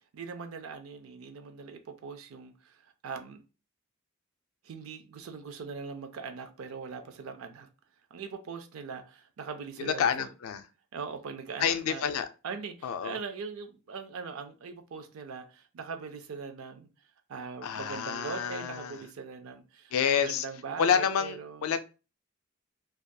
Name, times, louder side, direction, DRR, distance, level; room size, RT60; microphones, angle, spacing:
voice 1, 0.0-3.4 4.6-7.7 8.1-10.3 10.9-12.0 12.4-16.9 17.3-19.9 20.2-21.7, right 5 dB, 80° right, 0.4 m, -41 dB
voice 2, 9.8-10.6 11.6-12.3 12.8-13.2 17.6-19.0 19.9-20.5 20.8-21.8, left 7 dB, 85° left, 0.3 m, -28 dB
2.6 x 2.3 x 2.2 m
head